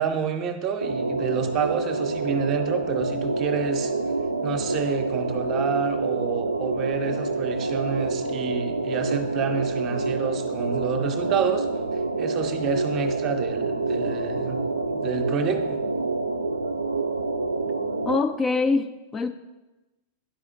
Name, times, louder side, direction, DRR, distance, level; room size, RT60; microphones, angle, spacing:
voice 1, 0.0-3.9 4.4-11.7 12.2-14.6 14.9-15.8, right 6 dB, 35° right, 7 dB, 0.7 m, -29 dB
sound 1, 0.8-18.2, right 3 dB, 80° right, 0.3 m, -27 dB
voice 2, 18.0-19.3, left 4 dB, 20° left, 10 dB, 0.3 m, -24 dB
10.0 x 4.9 x 2.5 m, 1.1 s
figure-of-eight pair, 90°, 0 cm